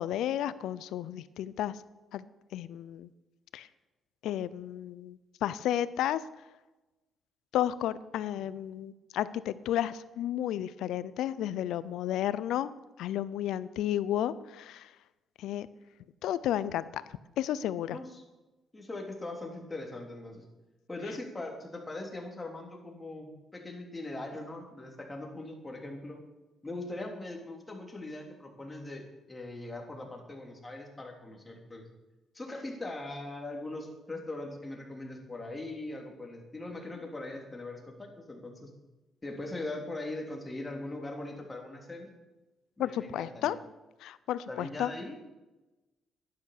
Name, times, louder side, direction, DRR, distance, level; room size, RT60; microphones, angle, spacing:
voice 1, 0.0-1.8 2.1-2.2 2.5-3.1 3.5-3.7 4.2-6.2 7.5-12.7 13.0-14.9 15.4-15.7 16.2-18.0 42.8-43.6 44.0-44.9, left 11 dB, 85° left, 17 dB, 0.6 m, -32 dB
voice 2, 17.9-18.2 18.7-20.4 20.9-26.2 26.6-31.8 32.3-38.7 39.2-42.1 42.8-43.6 44.5-45.2, left 2 dB, 20° left, 1 dB, 3.3 m, -41 dB
11.5 x 10.5 x 6.7 m, 1.1 s
cardioid pair, 90°, 0 cm